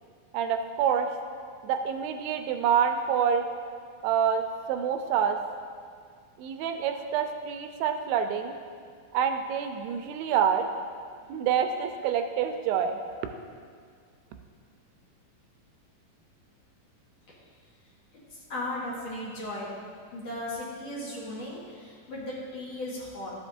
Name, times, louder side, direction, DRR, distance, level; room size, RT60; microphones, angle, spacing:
voice 1, 0.3-1.1 1.6-3.5 4.0-5.4 6.4-8.5 9.1-10.7 11.3-13.0, right 8 dB, 90° right, 6 dB, 2.4 m, -27 dB
voice 2, 18.5-19.7 20.1-23.3, left 1 dB, 55° left, -7 dB, 2.2 m, -36 dB
13.0 x 8.0 x 2.6 m, 2.1 s
omnidirectional pair, 4.2 m